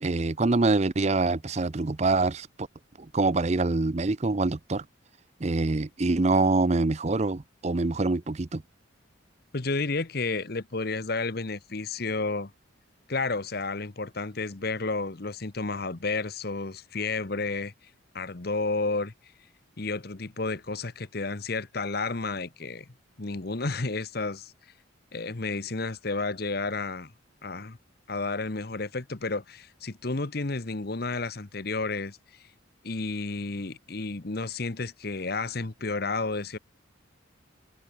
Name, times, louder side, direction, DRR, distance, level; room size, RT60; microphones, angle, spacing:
voice 1, 0.0-2.7 3.1-4.8 5.4-8.6, right 3 dB, 35° right, 0.6 m, -25 dB
voice 2, 9.5-12.5 13.1-17.7 18.1-19.1 19.8-22.9 23.2-24.5 25.1-27.1 27.4-27.8 28.1-32.2 32.8-36.6, left 3 dB, 50° left, 1.0 m, -31 dB
head